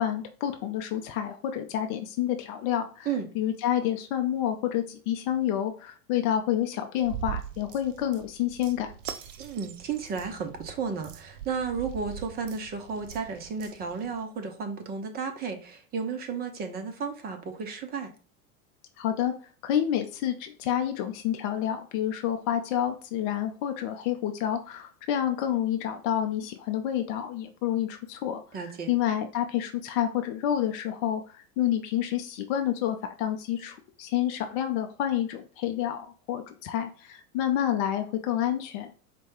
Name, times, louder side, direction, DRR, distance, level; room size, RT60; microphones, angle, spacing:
voice 1, 0.0-3.1 3.3-8.9 19.0-19.3 19.6-28.4 28.9-38.9, left 11 dB, 35° left, 6 dB, 0.6 m, -29 dB
sound 1, 7.0-14.2, right 9 dB, 60° right, 0.6 m, -42 dB
voice 2, 9.4-18.1 28.5-28.9, right 5 dB, 20° right, 5 dB, 0.7 m, -33 dB
4.4 x 2.2 x 4.5 m, 0.40 s
figure-of-eight pair, 85°, 43 cm